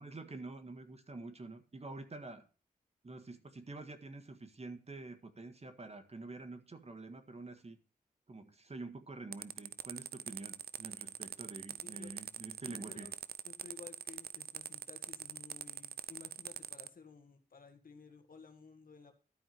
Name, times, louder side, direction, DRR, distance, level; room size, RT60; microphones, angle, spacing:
voice 1, 0.0-2.4 3.0-7.8 8.3-13.1, right 3 dB, 40° right, 8 dB, 1.7 m, -47 dB
sound 1, 9.3-16.9, right 9 dB, 85° right, 0.5 m, -43 dB
voice 2, 11.8-12.1 12.7-13.1 13.5-19.1, left 5 dB, 65° left, 5 dB, 1.8 m, -55 dB
12.5 x 4.7 x 7.6 m, 0.36 s
cardioid pair, 55°, 16 cm